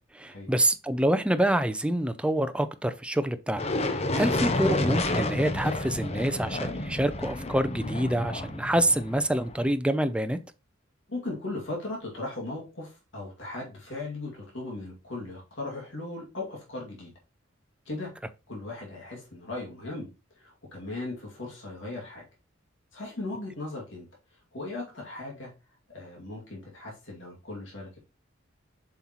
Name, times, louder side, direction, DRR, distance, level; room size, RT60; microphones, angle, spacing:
voice 1, 0.1-10.4, right 1 dB, 5° right, 0.5 m, -27 dB
sound 1, 3.6-9.7, left 2 dB, 30° left, 0.7 m, -30 dB
voice 2, 11.1-17.1 17.9-18.1 18.5-20.1 20.4-22.2 22.9-24.1 24.5-25.5 25.9-28.0, left 2 dB, 65° left, 2.3 m, -37 dB
7.5 x 5.6 x 3.0 m
head